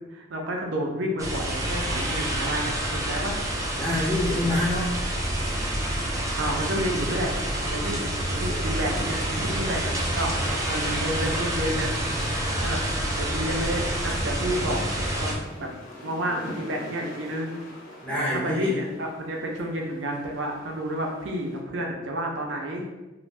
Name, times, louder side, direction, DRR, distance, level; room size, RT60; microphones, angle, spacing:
voice 1, 0.1-3.8 6.4-7.3 7.7-11.9 12.6-12.8 13.2-14.8 15.2-15.7 16.0-17.6 18.1-22.9, equal, 70° right, 1 dB, 0.5 m, -30 dB
sound 1, 1.2-15.3, right 1 dB, 15° right, 0.4 m, -28 dB
voice 2, 3.7-5.0 18.0-18.7, left 1 dB, 5° left, -7 dB, 0.7 m, -26 dB
sound 2, 4.4-21.6, equal, 50° left, 0.8 m, -45 dB
2.5 x 2.1 x 3.2 m, 1.1 s
head